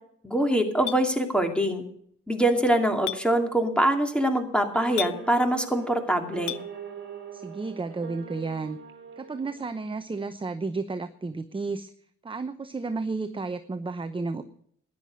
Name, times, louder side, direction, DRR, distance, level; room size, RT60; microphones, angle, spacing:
voice 1, 0.2-1.8 2.3-6.6, right 1 dB, 5° left, 5 dB, 2.5 m, -24 dB
Chink clink, 0.9-1.0 3.1-3.2 5.0-5.2 6.5-6.6, left 15 dB, 75° left, 0.6 m, -31 dB
sound 1, 4.7-10.2, right 6 dB, 40° right, 2.5 m, -43 dB
voice 2, 7.3-8.8 9.2-11.9 12.2-14.4, right 3 dB, 15° right, 9 dB, 0.8 m, -32 dB
13.0 x 10.5 x 6.3 m, 0.66 s
cardioid pair, 90°, 30 cm